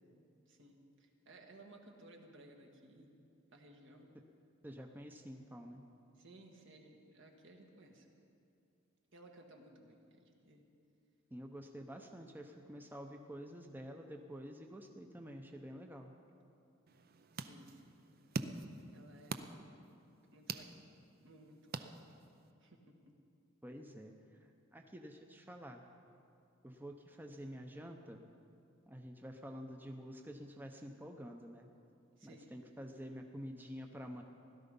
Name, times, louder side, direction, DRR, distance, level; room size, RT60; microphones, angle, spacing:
voice 1, 0.5-3.2 3.5-4.1 6.1-8.1 9.1-10.6 17.3-17.8 18.9-19.9 20.3-20.7 21.2-21.8 22.6-23.1 32.2-32.5, right 1 dB, 65° right, 2 dB, 1.7 m, -59 dB
voice 2, 4.6-5.8 11.3-16.1 23.6-24.1 24.7-25.8 26.6-28.2 28.9-31.7 32.2-34.2, equal, 10° right, 3 dB, 0.7 m, -49 dB
sound 1, 16.9-22.5, right 4 dB, 50° right, 0.6 m, -46 dB
17.0 x 12.5 x 5.3 m, 2.5 s
head